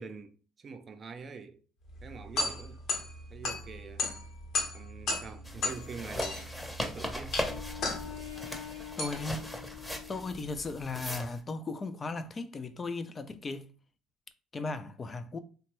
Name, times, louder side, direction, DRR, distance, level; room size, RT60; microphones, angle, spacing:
voice 1, 0.0-1.6 2.0-2.8 3.3-4.1 4.7-6.4 6.8-7.5, right 5 dB, 40° right, 0.4 m, -45 dB
sound 1, 1.9-11.0, left 3 dB, 60° left, 0.9 m, -36 dB
sound 2, 5.3-7.0 7.4-10.5, left 10 dB, 90° left, 0.6 m, -47 dB
sound 3, 5.5-11.4, left 1 dB, 10° left, 0.7 m, -39 dB
voice 2, 9.0-9.5 10.1-13.7 14.5-15.4, left 3 dB, 35° left, 0.3 m, -36 dB
2.9 x 2.2 x 3.0 m
supercardioid pair, 75°, 0 cm